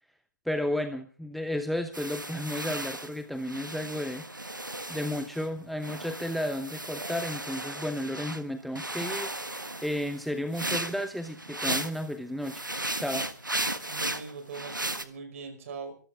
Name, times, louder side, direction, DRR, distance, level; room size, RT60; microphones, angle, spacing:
voice 1, 0.5-4.2 4.9-12.7 13.0-13.3, left 1 dB, ahead, 9 dB, 0.8 m, -33 dB
sound 1, 1.9-5.5 5.8-8.4 8.8-12.1 12.4-15.0, right 1 dB, 85° right, 1.6 m, -35 dB
voice 2, 13.9-16.0, right 4 dB, 45° right, 9 dB, 5.4 m, -41 dB
25.0 x 15.0 x 3.5 m, 0.39 s
figure-of-eight pair, 125°, 10 cm